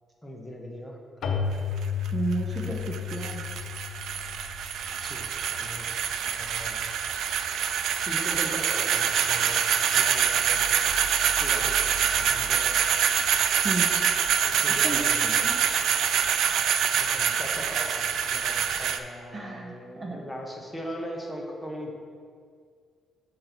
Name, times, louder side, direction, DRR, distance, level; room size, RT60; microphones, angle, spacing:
voice 1, 0.2-1.4 2.7-2.8 5.0-5.9 6.3-6.9 8.0-10.6 11.4-12.8 14.4-15.3 16.9-21.9, equal, 5° left, 0 dB, 0.9 m, -40 dB
Keyboard (musical), 1.2-5.7, left 7 dB, 65° left, 0.7 m, -33 dB
sound 1, 1.5-19.0, right 8 dB, 80° right, 0.4 m, -25 dB
voice 2, 2.1-3.5 13.6-13.9 14.8-15.6 19.3-20.3, right 3 dB, 25° right, 0 dB, 0.7 m, -33 dB
6.6 x 4.3 x 5.9 m, 2.2 s
cardioid pair, 135°, 0 cm